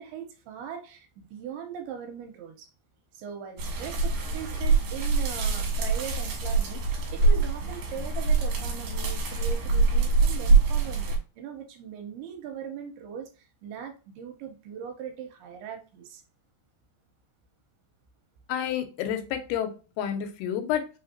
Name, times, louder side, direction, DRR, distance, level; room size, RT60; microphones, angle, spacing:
voice 1, 0.0-2.7 3.1-16.2, right 8 dB, 85° right, 2.6 m, -40 dB
sound 1, 3.6-11.2, right 4 dB, 65° right, 2.4 m, -24 dB
voice 2, 18.5-20.9, left 9 dB, 80° left, 2.8 m, -30 dB
5.8 x 3.4 x 2.5 m
omnidirectional pair, 4.6 m